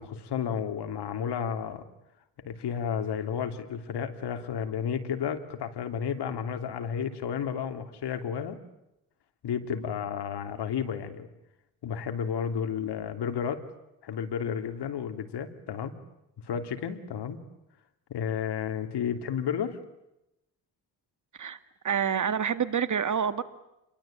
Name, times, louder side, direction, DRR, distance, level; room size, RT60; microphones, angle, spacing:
voice 1, 0.0-1.8 2.4-8.6 9.4-11.3 11.8-13.6 14.0-15.9 16.5-17.4 18.1-19.8, left 7 dB, 70° left, 8 dB, 3.1 m, -32 dB
voice 2, 21.8-23.4, right 7 dB, 45° right, 12 dB, 2.1 m, -27 dB
28.0 x 22.5 x 8.9 m, 0.88 s
cardioid pair, 100°, 42 cm